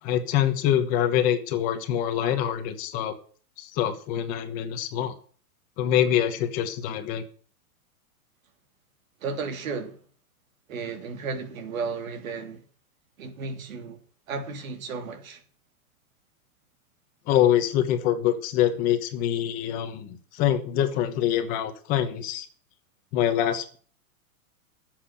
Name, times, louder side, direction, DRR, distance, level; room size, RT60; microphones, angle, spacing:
voice 1, 0.0-3.2 3.6-5.1 5.8-7.2 17.3-22.5 23.1-23.8, left 10 dB, 20° left, 1.1 m, -25 dB
voice 2, 9.2-10.0 10.7-12.6 13.2-14.0 14.3-15.4, right 4 dB, 65° right, 3.1 m, -34 dB
12.5 x 7.7 x 8.7 m
supercardioid pair, 175°, 43 cm